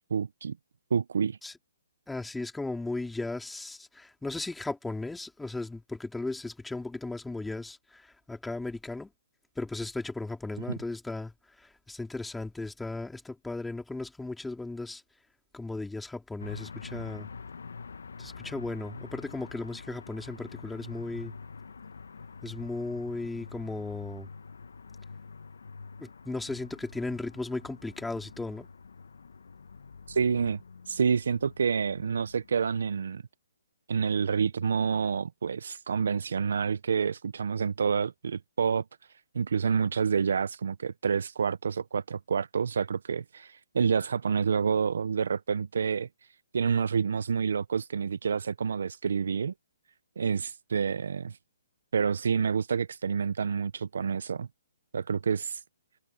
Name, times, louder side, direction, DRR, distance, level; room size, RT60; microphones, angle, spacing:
voice 1, 0.1-0.6 0.9-1.4 30.1-30.6 30.9-33.2 33.9-38.8 39.3-46.1 46.5-49.5 50.2-51.4 51.9-54.5 54.9-55.6, right 6 dB, 70° right, 0.8 m, -28 dB
voice 2, 2.1-9.1 9.6-15.0 15.5-17.3 18.2-21.3 22.4-24.3 26.0-28.7, left 2 dB, 5° left, 2.9 m, -36 dB
sound 1, 16.4-33.0, left 5 dB, 80° left, 1.3 m, -46 dB
hypercardioid pair, 155°, 0 cm